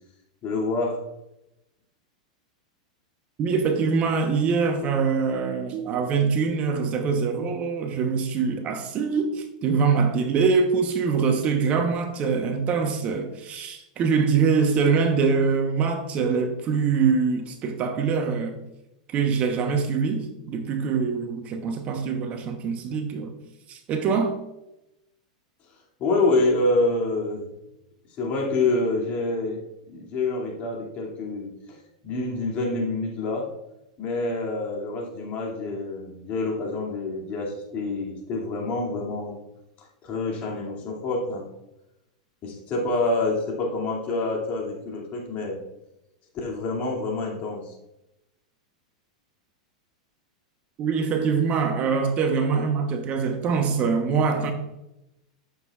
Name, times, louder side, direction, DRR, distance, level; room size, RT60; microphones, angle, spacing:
voice 1, 0.4-1.0 26.0-27.4 28.2-29.6 29.9-31.8 32.0-33.5 34.0-39.4 40.0-41.4 42.4-45.6 46.3-47.7, left 2 dB, 40° left, 2.4 m, -27 dB
voice 2, 3.4-18.6 19.1-23.3 23.7-24.4 50.8-54.5, right 5 dB, 35° right, 1.0 m, -24 dB
9.4 x 7.2 x 2.4 m
hypercardioid pair, 120°, 4 cm